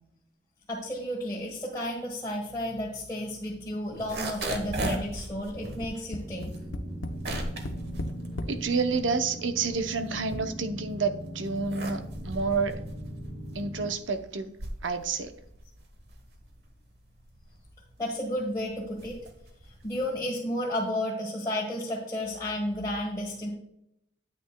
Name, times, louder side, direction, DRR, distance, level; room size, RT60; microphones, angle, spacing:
voice 1, 0.7-6.5 18.0-19.2 19.6-23.5, left 1 dB, 20° left, -5 dB, 1.3 m, -32 dB
sound 1, 3.8-9.1 9.5-10.9 11.4-20.2, right 1 dB, 55° right, 1.1 m, -38 dB
Tap, 5.5-8.6 9.4-9.5 9.8-9.9, left 1 dB, 80° left, 0.8 m, -36 dB
sound 2, 6.2-13.9, equal, 30° right, 2.5 m, -40 dB
voice 2, 8.5-12.8 13.5-14.5 14.8-15.3, right 4 dB, 80° right, 9 dB, 0.7 m, -29 dB
9.2 x 8.5 x 2.2 m, 0.79 s
head